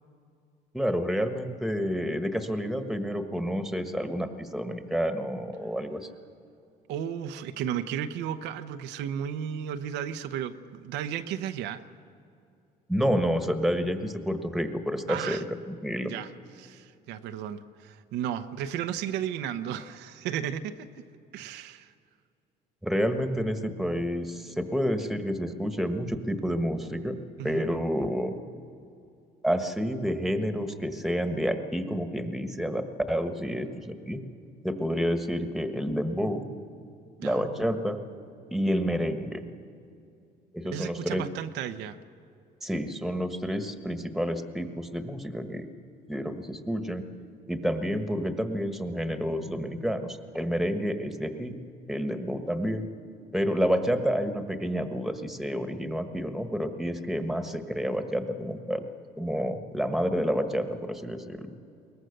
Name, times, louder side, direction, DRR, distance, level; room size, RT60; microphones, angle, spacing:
voice 1, 0.7-6.1 12.9-16.1 22.8-27.2 27.4-28.4 29.4-34.2 34.6-36.4 37.2-38.0 38.5-39.4 40.5-41.2 42.6-45.7 46.1-47.0 47.5-51.5 51.9-52.9 53.3-58.9 59.2-61.5, equal, ahead, 8 dB, 1.4 m, -29 dB
voice 2, 6.9-11.8 15.1-15.4 16.0-16.3 16.6-20.9 21.3-21.9 27.4-27.7 37.2-37.7 40.6-42.0, right 9 dB, 90° right, 8 dB, 0.9 m, -34 dB
22.0 x 19.0 x 6.7 m, 2.5 s
cardioid pair, 110°, 17 cm